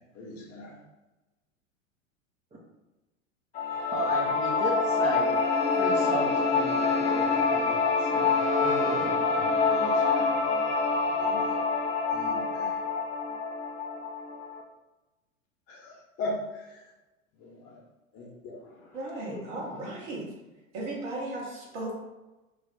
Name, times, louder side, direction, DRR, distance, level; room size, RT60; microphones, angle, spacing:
voice 1, 0.1-0.8 9.7-10.3 11.1-11.4 12.1-12.8 15.7-16.4 17.4-17.7 18.1-18.5, left 2 dB, 35° left, -2 dB, 1.1 m, -39 dB
sound 1, 3.5-14.6, left 4 dB, 20° left, 0.4 m, -26 dB
voice 2, 3.9-5.3 5.8-9.5, right 2 dB, 20° right, -7 dB, 0.7 m, -35 dB
Bowed string instrument, 5.1-10.5, left 5 dB, 60° left, 0.6 m, -35 dB
voice 3, 18.9-20.3 20.7-22.0, right 1 dB, 60° right, -3 dB, 1.5 m, -35 dB
3.2 x 2.4 x 3.8 m, 1.1 s
hypercardioid pair, 95°, 40 cm